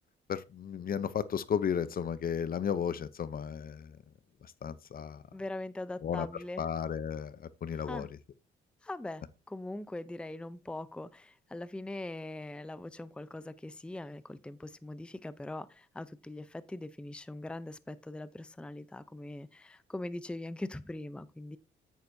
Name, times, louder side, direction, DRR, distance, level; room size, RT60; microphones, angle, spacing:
voice 1, 0.3-4.0 4.6-5.2 6.0-6.3 6.6-8.1, left 8 dB, 45° left, 0.7 m, -34 dB
voice 2, 5.3-6.6 7.7-8.1 8.8-21.6, left 2 dB, 5° left, 0.6 m, -41 dB
9.4 x 9.1 x 2.7 m
cardioid pair, 90°, 20 cm